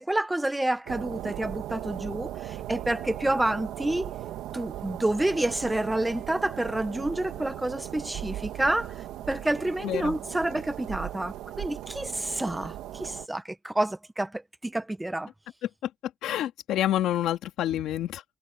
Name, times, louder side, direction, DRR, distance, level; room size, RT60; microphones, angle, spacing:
voice 1, 0.0-4.2 4.5-8.9 9.3-15.3, right 1 dB, 10° right, 1.0 m, -29 dB
sound 1, 0.9-13.3, right 13 dB, 90° right, 1.8 m, -38 dB
voice 2, 9.8-10.2 15.6-15.7 16.2-18.2, left 12 dB, 80° left, 2.4 m, -28 dB
cardioid pair, 130°, 0 cm